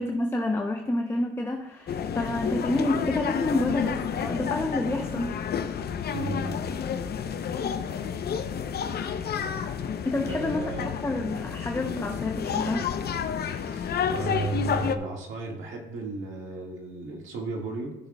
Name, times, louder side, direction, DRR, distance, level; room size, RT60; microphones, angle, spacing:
voice 1, 0.0-5.5 10.0-13.0, left 2 dB, 10° left, 3 dB, 0.7 m, -29 dB
sound 1, 1.9-15.0, left 7 dB, 55° left, 0.6 m, -30 dB
voice 2, 6.1-6.8 10.2-11.0 13.5-17.9, right 3 dB, 85° right, 0 dB, 1.8 m, -34 dB
14.0 x 6.5 x 2.3 m, 0.96 s
cardioid pair, 90°, 20 cm